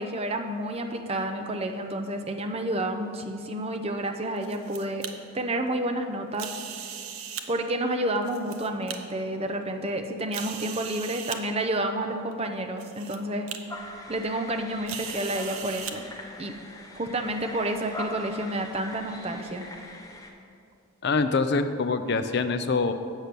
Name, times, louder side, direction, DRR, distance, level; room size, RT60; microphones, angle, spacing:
voice 1, 0.0-5.0 5.3-6.5 7.5-13.5 14.1-16.0 16.4-16.5 16.9-19.7, right 1 dB, 25° right, 5 dB, 0.5 m, -30 dB
sound 1, 4.2-5.1 6.3-7.5 8.2-9.0 9.6-9.7 10.3-11.4 12.3-12.4 12.8-13.2 13.5-13.6 14.9-15.9, right 8 dB, 75° right, 0.7 m, -37 dB
sound 2, 13.7-20.3, left 1 dB, 15° left, 0.6 m, -42 dB
voice 2, 21.0-22.9, left 4 dB, 50° left, 9 dB, 0.4 m, -25 dB
8.0 x 5.8 x 6.8 m, 2.4 s
head